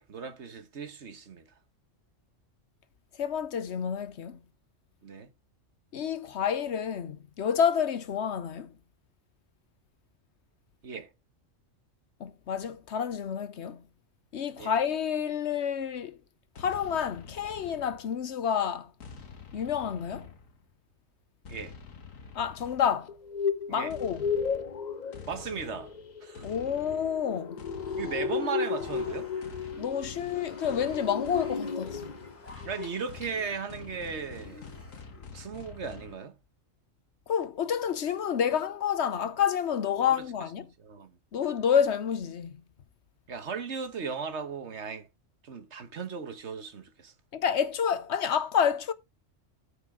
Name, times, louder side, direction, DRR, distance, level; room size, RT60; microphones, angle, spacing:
voice 1, 0.0-1.5 5.0-5.3 10.8-11.1 14.6-14.7 21.5-21.8 23.7-23.9 25.3-25.9 26.2-26.5 28.0-29.3 32.6-34.6 35.3-36.3 40.1-40.2 40.8-41.2 43.3-45.1 45.4-47.1, right 5 dB, 60° right, 1.4 m, -37 dB
voice 2, 3.2-4.4 5.9-8.7 12.2-13.8 14.3-16.2 16.6-18.9 19.5-20.3 22.3-23.1 23.7-24.3 26.4-27.6 29.8-32.1 37.3-40.7 41.3-42.6 47.3-48.9, left 8 dB, 65° left, 1.0 m, -29 dB
sound 1, 16.5-18.3 19.0-20.7 21.4-23.1 23.9-36.2, left 5 dB, 85° left, 1.7 m, -47 dB
sound 2, 23.1-32.3 32.6-32.9 33.2-33.3, left 6 dB, 40° left, 0.7 m, -34 dB
sound 3, 26.3-35.3, left 1 dB, 10° left, 2.0 m, -53 dB
13.5 x 5.0 x 3.7 m
omnidirectional pair, 1.3 m